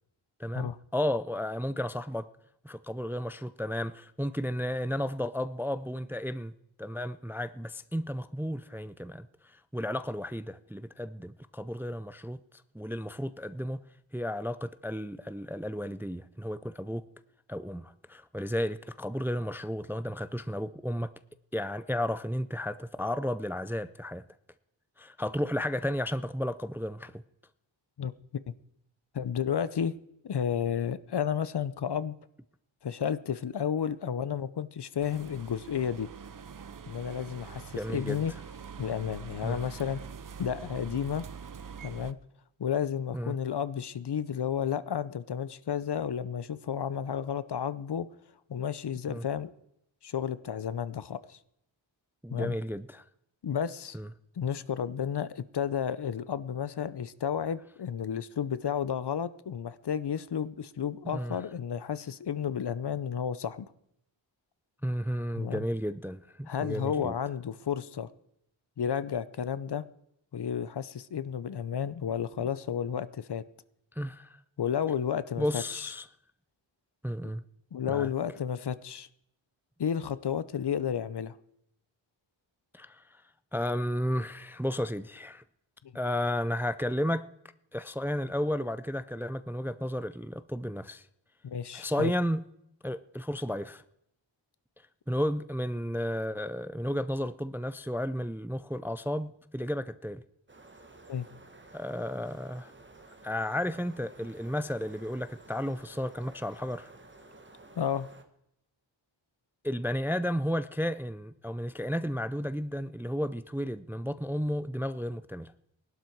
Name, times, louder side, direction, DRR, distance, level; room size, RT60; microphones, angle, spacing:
voice 1, 0.4-2.3 2.6-6.5 6.8-12.4 12.7-13.8 14.1-17.1 17.5-21.1 21.5-24.2 25.0-27.2 37.8-38.2 39.4-39.6 43.1-43.4 49.1-49.2 52.2-53.0 53.9-54.1 61.1-61.4 64.8-67.2 72.4-72.5 74.0-74.4 75.4-76.1 77.0-77.4 77.9-78.1 82.7-83.2 83.5-85.4 85.9-87.3 87.7-91.1 91.7-92.5 92.8-93.8 95.1-100.2 101.7-102.7 103.2-106.9 109.6-115.5, equal, 5° right, 0.4 m, -33 dB
voice 2, 29.1-30.0 30.2-32.2 32.8-36.1 36.9-38.3 38.8-40.0 40.4-41.3 41.8-42.2 42.6-48.1 48.5-49.5 50.0-51.4 52.3-52.5 53.4-54.0 54.4-63.7 65.3-65.6 66.5-68.1 68.8-69.8 70.3-73.4 74.6-75.6 77.7-79.1 79.8-81.4 91.4-92.1 101.1-101.3 107.8-108.1, left 8 dB, 55° left, 0.7 m, -32 dB
sound 1, 35.0-42.1, right 6 dB, 40° right, 0.7 m, -44 dB
sound 2, 100.5-108.2, right 2 dB, 25° right, 1.7 m, -53 dB
20.0 x 12.0 x 4.6 m
wide cardioid pair, 90°, 48 cm